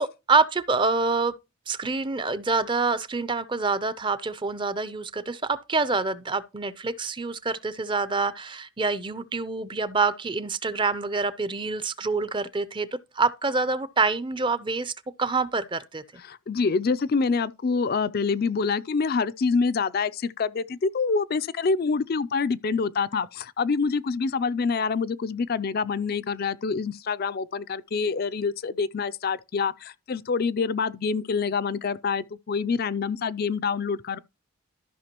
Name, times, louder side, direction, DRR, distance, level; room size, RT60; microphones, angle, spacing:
voice 1, 0.0-1.4 1.7-12.9 13.1-14.9 15.2-16.0, right 4 dB, 20° right, 0.5 m, -26 dB
voice 2, 16.2-34.2, left 5 dB, 45° left, 0.4 m, -26 dB
13.5 x 5.9 x 2.9 m
head